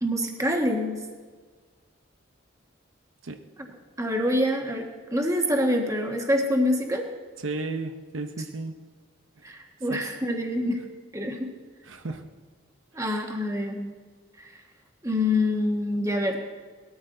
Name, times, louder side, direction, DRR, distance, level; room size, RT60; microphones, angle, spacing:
voice 1, 0.0-1.0 4.0-7.0 9.4-10.8 11.1-11.5 12.9-13.9 14.4-14.5 15.0-16.4, left 1 dB, 15° right, 2 dB, 1.4 m, -26 dB
voice 2, 7.4-8.9 9.9-10.1 11.9-12.3, right 3 dB, 80° right, 7 dB, 0.9 m, -34 dB
19.5 x 13.0 x 3.9 m, 1.5 s
head